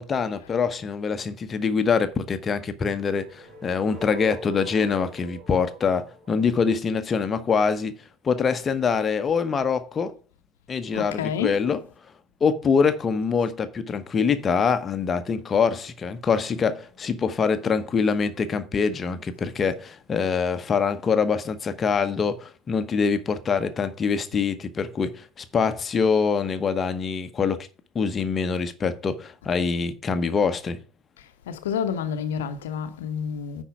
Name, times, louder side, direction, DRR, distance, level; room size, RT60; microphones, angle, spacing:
voice 1, 0.0-7.9 8.2-10.1 10.7-11.8 12.4-27.7 27.9-30.8, left 5 dB, 25° left, 1.0 m, -24 dB
sound 1, 3.1-7.2, right 3 dB, 45° right, 2.1 m, -41 dB
voice 2, 10.9-11.6 31.5-33.6, left 7 dB, 65° left, 0.9 m, -29 dB
10.0 x 4.6 x 6.0 m
figure-of-eight pair, 70°, 0 cm